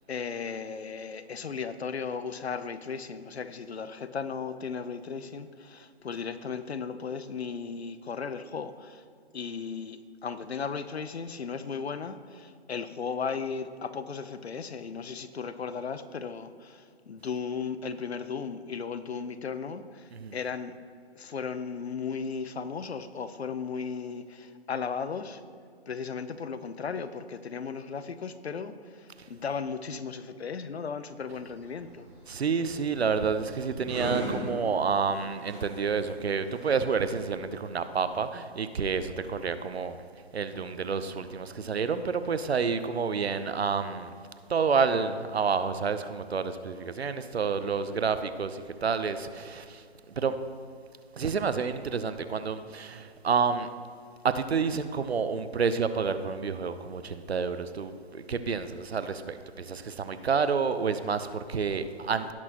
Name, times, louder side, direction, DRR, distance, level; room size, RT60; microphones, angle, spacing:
voice 1, 0.1-9.0 9.3-20.7 21.1-25.4 25.9-32.1, left 5 dB, 75° left, 12 dB, 0.8 m, -36 dB
sound 1, 31.3-37.3, right 1 dB, 5° right, 0.8 m, -39 dB
voice 2, 32.3-40.0 40.3-44.1 44.5-49.8 50.2-50.3 51.2-53.7 54.2-62.3, right 5 dB, 70° right, 11 dB, 0.8 m, -29 dB
18.0 x 6.2 x 3.0 m, 2.3 s
hypercardioid pair, 170°, 32 cm